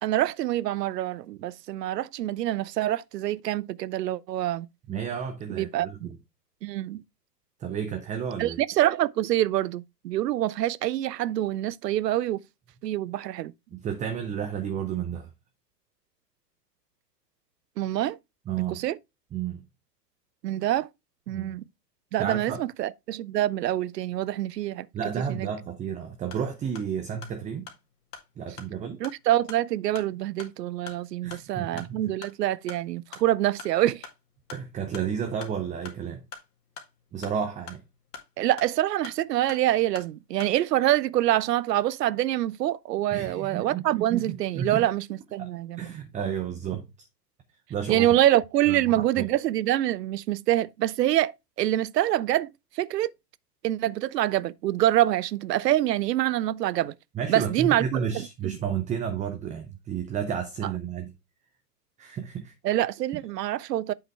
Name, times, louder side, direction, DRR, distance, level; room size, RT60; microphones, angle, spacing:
voice 1, 0.0-4.7 5.5-6.1 6.6-7.0 8.4-12.4 12.8-13.5 17.8-18.2 18.7-19.0 20.4-20.9 21.3-21.6 22.1-24.9 25.3-25.5 29.0-34.1 38.4-46.0 47.9-51.3 51.6-53.1 53.6-56.9 57.3-58.0 58.4-58.6 62.6-63.9, right 13 dB, 75° right, 0.6 m, -26 dB
voice 2, 4.9-6.2 7.6-8.6 13.7-15.3 18.5-18.8 19.3-19.6 21.3-21.6 22.2-22.6 24.9-27.7 28.4-29.0 31.2-32.1 34.5-36.2 37.1-37.8 43.1-44.8 45.4-45.5 45.8-46.8 47.7-48.1 48.7-49.3 57.1-61.1 62.0-62.5, right 8 dB, 15° right, 0.7 m, -32 dB
sound 1, 26.2-40.6, left 5 dB, 70° left, 2.1 m, -47 dB
7.8 x 5.7 x 3.3 m
hypercardioid pair, 110°, 49 cm